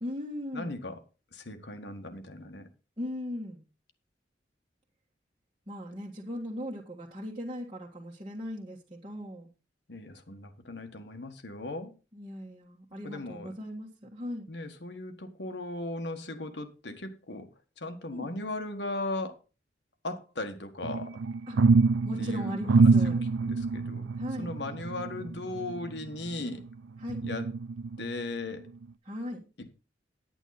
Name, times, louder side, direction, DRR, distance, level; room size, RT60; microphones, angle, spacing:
voice 1, 0.0-0.8 3.0-3.6 5.7-9.5 12.1-14.5 18.1-18.3 21.5-21.6 22.0-23.2 24.2-24.5 27.0-27.2 29.0-29.4, equal, 30° right, 1.5 m, -38 dB
voice 2, 0.5-1.0 1.3-2.7 9.9-11.9 13.0-13.5 14.5-17.5 17.8-19.4 20.0-21.2 22.2-22.5 23.0-23.2 23.4-24.1 24.4-26.6 27.2-27.5 28.0-28.6 29.6-29.7, left 2 dB, 70° left, 1.5 m, -37 dB
sound 1, 20.8-26.6 27.1-28.2 28.7-28.8, right 4 dB, 90° right, 0.4 m, -26 dB
10.0 x 9.1 x 4.1 m
head